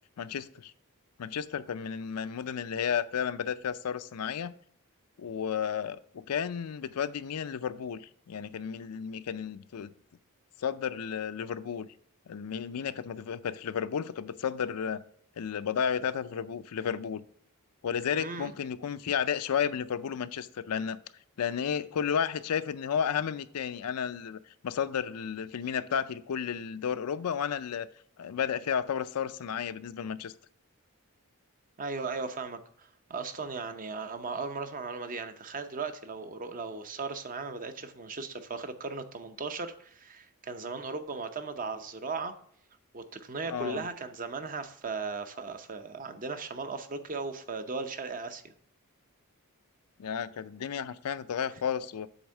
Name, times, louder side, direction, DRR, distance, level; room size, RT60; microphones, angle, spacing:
voice 1, 0.2-0.7 1.2-4.5 5.2-9.9 10.6-11.9 12.3-15.0 15.4-17.2 17.8-21.0 21.4-27.9 28.2-30.3 43.5-43.8 50.0-52.1, left 7 dB, 85° left, 13 dB, 0.4 m, -32 dB
voice 2, 18.0-18.5 31.8-42.3 42.9-48.5, right 4 dB, 40° right, 9 dB, 0.6 m, -37 dB
8.0 x 3.5 x 6.4 m, 0.63 s
head